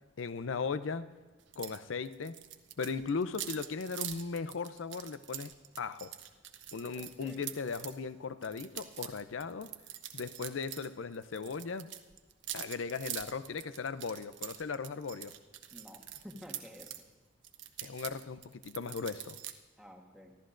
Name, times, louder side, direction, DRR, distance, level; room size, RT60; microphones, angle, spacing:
voice 1, 0.2-1.1 1.6-2.4 2.8-5.5 5.8-6.1 6.7-9.7 10.1-11.9 12.5-15.3 17.8-19.4, left 5 dB, 90° left, 13 dB, 0.5 m, -37 dB
sound 1, 1.5-1.8 2.0-7.9 8.4-10.9 11.1-17.0 17.4-19.5, right 11 dB, 70° right, 0.8 m, -44 dB
voice 2, 6.9-7.5 15.7-17.0 19.8-20.4, left 1 dB, 5° right, 0 dB, 1.3 m, -51 dB
25.5 x 13.0 x 2.6 m, 1.3 s
head